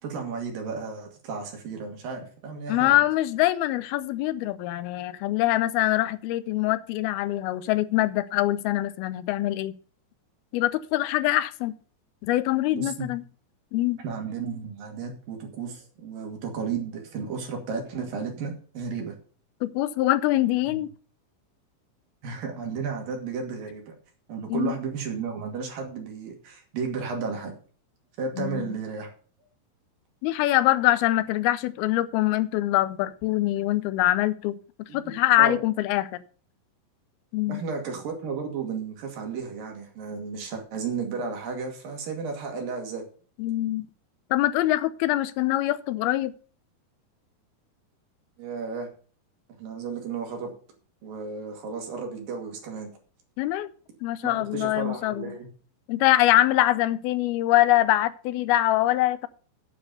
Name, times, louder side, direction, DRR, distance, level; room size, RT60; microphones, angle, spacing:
voice 1, 0.0-3.0 12.7-13.1 14.0-19.1 20.7-20.8 22.2-23.9 24.3-27.5 28.2-29.1 34.9-35.6 37.5-43.0 48.4-48.9 49.6-50.5 51.0-52.9 54.2-55.5, right 5 dB, 65° right, 4.0 m, -33 dB
voice 2, 2.7-9.7 10.5-11.7 12.2-13.2 13.7-14.0 19.6-20.9 24.5-24.8 28.4-28.8 30.2-36.1 37.3-37.6 43.4-43.9 44.3-46.3 53.4-53.7 54.0-55.3 55.9-59.3, left 15 dB, 85° left, 2.6 m, -24 dB
9.5 x 6.8 x 6.9 m
omnidirectional pair, 4.3 m